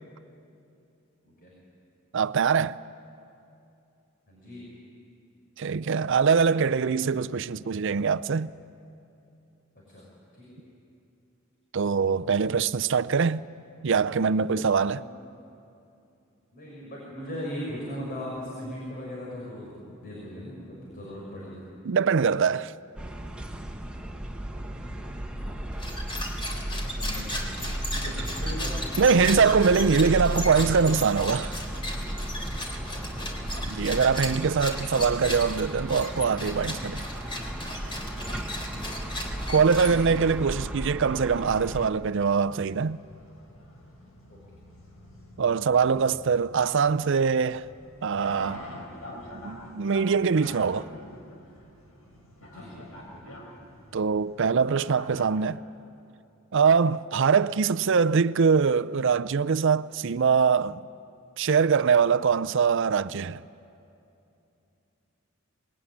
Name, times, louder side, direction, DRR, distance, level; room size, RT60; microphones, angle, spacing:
voice 1, 2.1-2.8 5.6-8.5 11.7-13.4 13.8-15.0 21.9-22.7 29.0-31.6 33.7-37.1 39.5-43.0 45.4-47.7 48.0-48.6 49.4-50.9 53.9-55.6 56.5-60.8 61.4-63.4, right 5 dB, 60° right, 0.5 m, -23 dB
voice 2, 4.3-4.6 9.9-10.0 10.4-10.6 14.9-15.1 16.5-21.6 24.7-25.0 26.8-29.1 32.9-33.5 38.6-39.1 39.8-40.1 44.3-44.4 52.5-53.2, equal, 45° left, 6.2 m, -39 dB
sound 1, 23.0-41.9, right 1 dB, 5° right, 1.5 m, -34 dB
sound 2, 25.7-40.3, left 1 dB, 25° left, 3.4 m, -36 dB
sound 3, 40.7-55.3, left 1 dB, 85° left, 5.1 m, -47 dB
25.5 x 20.5 x 10.0 m
head